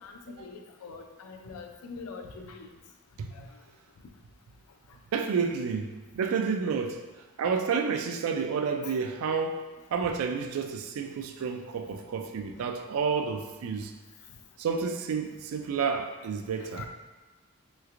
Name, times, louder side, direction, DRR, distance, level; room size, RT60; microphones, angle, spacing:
voice 1, 0.4-2.7 3.3-3.5 8.8-8.9 16.6-16.9, left 5 dB, 80° left, 4 dB, 0.4 m, -43 dB
voice 2, 5.1-7.0 7.4-9.6 9.9-13.9 14.6-16.9, right 5 dB, 70° right, 6 dB, 0.3 m, -30 dB
3.2 x 3.1 x 2.4 m, 1.2 s
head